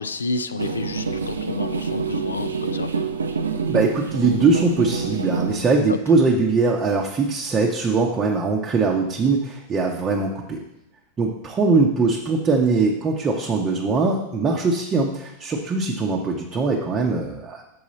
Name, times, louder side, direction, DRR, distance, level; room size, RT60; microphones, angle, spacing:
voice 1, 0.0-2.9 5.9-6.0, left 3 dB, 75° left, 11 dB, 0.4 m, -30 dB
sound 1, 0.6-5.6, right 5 dB, 75° right, 0.6 m, -26 dB
voice 2, 3.7-10.6 11.2-17.6, right 3 dB, 25° right, -1 dB, 0.8 m, -21 dB
7.2 x 4.8 x 4.1 m, 0.86 s
figure-of-eight pair, 90°, 0 cm